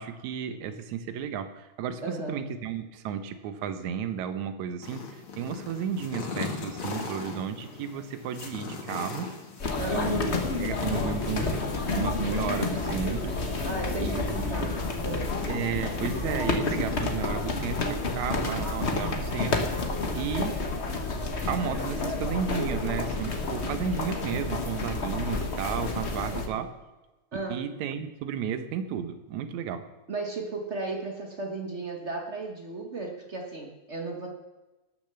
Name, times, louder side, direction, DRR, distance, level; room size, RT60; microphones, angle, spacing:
voice 1, 0.0-9.3 9.9-11.7 11.9-13.4 14.0-14.7 15.5-19.6 20.2-20.8 21.5-26.7 27.5-29.8, right 8 dB, 75° right, 9 dB, 2.3 m, -33 dB
voice 2, 2.0-2.4 9.8-10.2 13.6-15.3 26.3-26.6 27.3-27.7 30.1-34.3, right 3 dB, 55° right, 2 dB, 0.7 m, -35 dB
sound 1, 4.8-16.8, left 4 dB, 50° left, 2.2 m, -41 dB
sound 2, 9.6-26.5, left 3 dB, 85° left, 0.6 m, -30 dB
19.0 x 6.6 x 6.8 m, 1.1 s
omnidirectional pair, 3.4 m